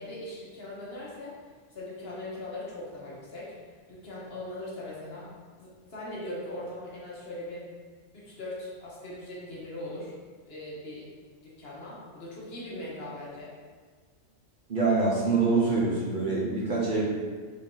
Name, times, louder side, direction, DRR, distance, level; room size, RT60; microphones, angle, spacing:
voice 1, 0.0-1.3 1.7-5.3 5.6-7.7 8.1-10.1 10.4-11.1 11.4-13.5, left 1 dB, 60° left, -6 dB, 1.2 m, -40 dB
voice 2, 14.7-17.1, right 3 dB, 50° right, -5 dB, 0.8 m, -25 dB
3.9 x 2.7 x 3.6 m, 1.5 s
omnidirectional pair, 1.2 m